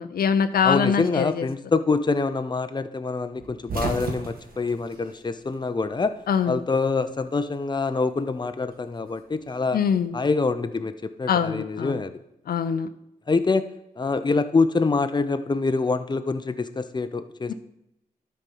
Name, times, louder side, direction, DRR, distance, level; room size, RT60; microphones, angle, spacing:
voice 1, 0.0-1.5 6.3-6.6 9.7-10.2 11.3-12.0 12.5-12.9 17.5-17.6, left 7 dB, 85° left, 10 dB, 0.6 m, -23 dB
voice 2, 0.6-6.1 6.5-9.8 10.1-12.1 13.3-13.6 14.0-17.5, left 4 dB, 30° left, 10 dB, 0.7 m, -25 dB
sound 1, 3.4-5.9 6.2-7.3 8.5-9.9, right 3 dB, 75° right, 1.5 m, -34 dB
12.0 x 4.4 x 5.5 m, 0.84 s
cardioid pair, 70°, 15 cm